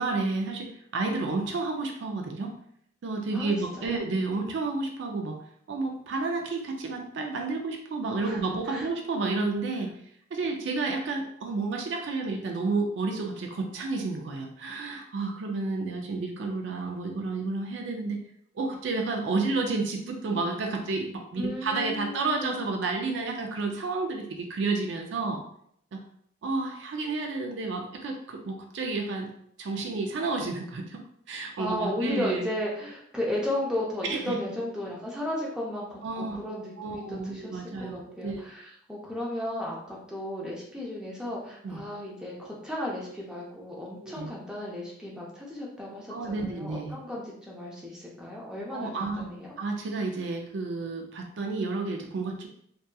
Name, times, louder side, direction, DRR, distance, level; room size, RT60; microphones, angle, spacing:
voice 1, 0.0-2.5 3.0-5.4 5.7-9.9 10.3-18.2 18.6-25.4 25.9-26.0 26.4-29.3 29.6-31.0 31.3-32.5 34.0-34.4 36.0-36.4 36.8-38.4 41.6-41.8 44.0-44.3 46.1-47.0 48.7-49.3 49.6-52.5, right 3 dB, 70° right, 2 dB, 0.4 m, -31 dB
voice 2, 3.3-4.0 8.2-8.4 8.7-8.9 21.4-22.5 31.6-49.5, left 1 dB, 5° right, -4 dB, 0.5 m, -34 dB
2.7 x 2.3 x 2.2 m, 0.68 s
head